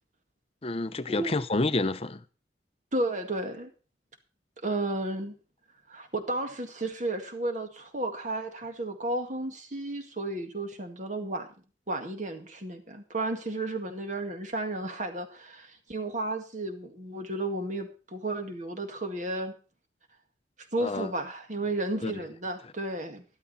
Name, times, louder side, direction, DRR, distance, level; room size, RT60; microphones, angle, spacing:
voice 1, 0.6-2.2 20.8-21.1 22.0-22.2, left 2 dB, 35° left, 0.7 m, -29 dB
voice 2, 2.9-3.7 4.6-5.4 5.9-11.5 11.9-19.5 20.7-23.2, right 2 dB, 45° right, 2.0 m, -33 dB
12.5 x 12.0 x 4.2 m
head